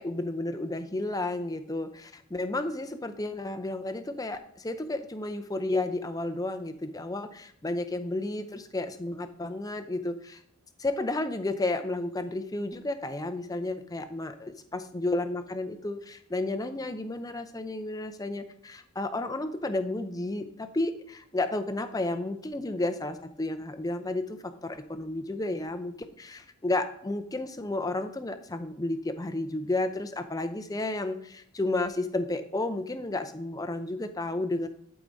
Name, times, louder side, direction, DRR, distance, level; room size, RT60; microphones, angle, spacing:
voice 1, 0.0-10.4 10.8-34.7, left 2 dB, 15° left, 8 dB, 0.5 m, -32 dB
11.5 x 4.9 x 4.0 m, 0.66 s
head